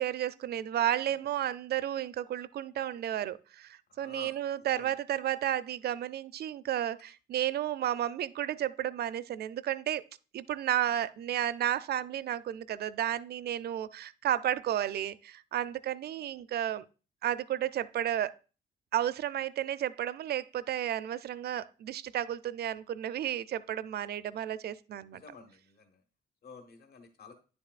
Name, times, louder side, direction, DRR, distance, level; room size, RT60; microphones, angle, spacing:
voice 1, 0.0-10.0 10.3-16.8 17.2-18.3 18.9-25.2, right 11 dB, 60° right, 0.4 m, -32 dB
voice 2, 3.9-4.3 4.7-4.9 25.1-26.0 26.4-27.3, left 5 dB, 55° left, 1.4 m, -51 dB
9.8 x 6.9 x 2.4 m
cardioid pair, 80°, 19 cm